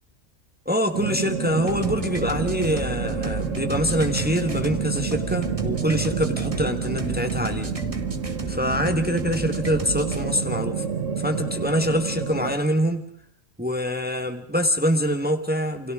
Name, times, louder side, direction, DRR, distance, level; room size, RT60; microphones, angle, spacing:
voice 1, 0.6-7.7 8.5-10.8 11.2-13.1 13.6-15.9, equal, 10° right, 6 dB, 1.4 m, -25 dB
sound 1, 0.9-12.6, right 6 dB, 80° right, 1.7 m, -29 dB
sound 2, 1.6-10.3, right 3 dB, 25° right, 1.6 m, -33 dB
29.0 x 26.5 x 3.7 m, 0.67 s
omnidirectional pair, 1.3 m